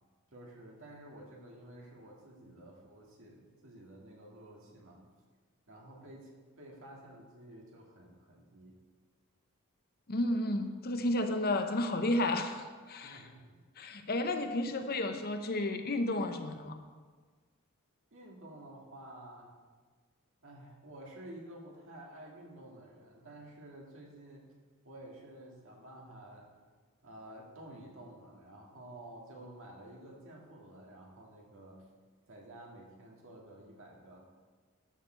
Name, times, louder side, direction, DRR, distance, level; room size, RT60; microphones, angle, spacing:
voice 1, 0.3-5.0 5.7-8.7 13.0-13.6 18.1-19.6 20.4-24.5 24.8-26.5 27.0-31.8 32.3-34.3, right 1 dB, 65° right, -1 dB, 2.0 m, -51 dB
voice 2, 10.1-13.2 13.8-16.8, left 1 dB, 45° left, 7 dB, 0.7 m, -32 dB
13.0 x 6.5 x 4.4 m, 1.5 s
head